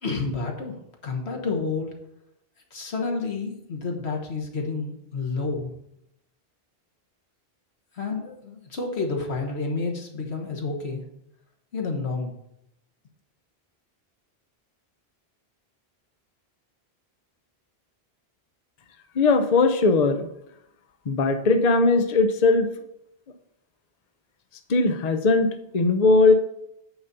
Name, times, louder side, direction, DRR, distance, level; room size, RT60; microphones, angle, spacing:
voice 1, 0.0-0.8 1.0-1.9 2.7-5.7 8.0-11.0 11.7-12.4, left 4 dB, 90° left, 2 dB, 1.7 m, -29 dB
voice 2, 19.1-20.3 21.1-22.7 24.7-26.3, left 3 dB, 45° left, 7 dB, 0.8 m, -19 dB
8.8 x 4.1 x 6.8 m, 0.79 s
omnidirectional pair, 1.1 m